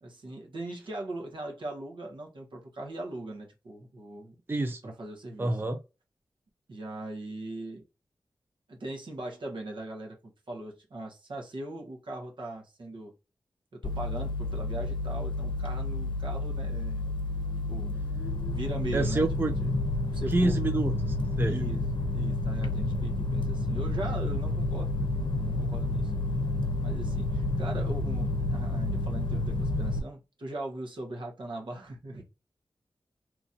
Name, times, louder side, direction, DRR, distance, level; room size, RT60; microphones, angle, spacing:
voice 1, 0.0-4.4 4.8-5.5 6.7-7.8 8.7-13.1 13.7-17.0 17.7-17.9 18.5-19.3 19.6-19.7 20.1-20.6 21.5-26.1 26.8-32.2, right 2 dB, 70° right, 1.2 m, -40 dB
voice 2, 4.5-4.8 5.4-5.8 18.9-19.5 20.3-21.7, right 2 dB, 25° right, 0.4 m, -28 dB
sound 1, 13.8-30.0, left 2 dB, 65° left, 0.7 m, -30 dB
3.0 x 2.7 x 2.4 m
cardioid pair, 55°, 9 cm